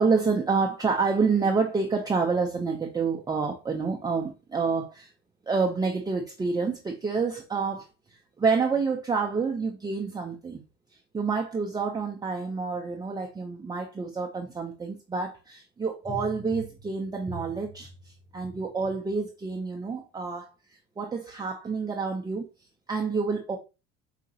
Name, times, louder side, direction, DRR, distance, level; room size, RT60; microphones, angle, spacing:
voice 1, 0.0-5.1 5.5-7.9 8.4-10.6 11.1-20.5 21.0-22.5 22.9-23.6, right 4 dB, 15° right, 0.5 m, -28 dB
4.9 x 2.8 x 2.6 m
supercardioid pair, 105°, 30 cm